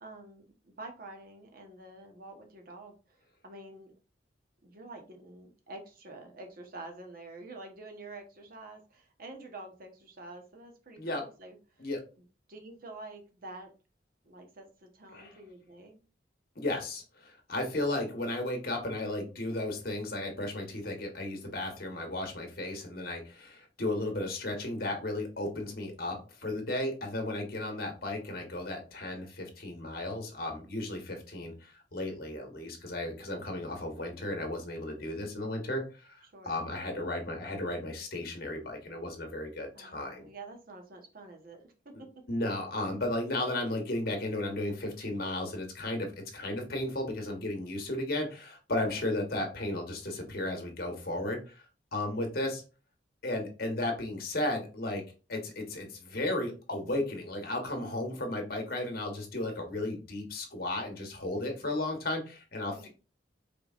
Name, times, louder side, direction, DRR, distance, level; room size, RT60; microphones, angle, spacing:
voice 1, 0.0-2.9 3.4-3.9 4.6-11.6 12.5-13.7 14.2-16.1 27.4-27.8 36.3-36.6 39.7-41.9 48.9-49.0 62.7-62.9, right 2 dB, 55° right, 3 dB, 1.0 m, -48 dB
voice 2, 16.5-40.3 41.9-51.6 51.9-52.6 53.2-55.0 55.3-62.9, left 1 dB, 55° left, 3 dB, 1.3 m, -34 dB
4.9 x 3.5 x 2.4 m, 0.34 s
head